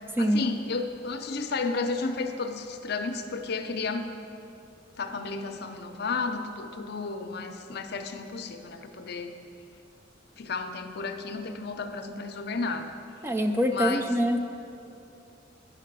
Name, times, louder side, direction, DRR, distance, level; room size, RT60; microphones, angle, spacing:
voice 1, 0.2-4.1 5.0-9.3 10.4-13.0 13.7-14.1, left 4 dB, 60° left, 7 dB, 0.6 m, -32 dB
voice 2, 13.2-14.4, equal, 15° right, 6 dB, 0.4 m, -24 dB
10.0 x 5.7 x 6.0 m, 2.8 s
head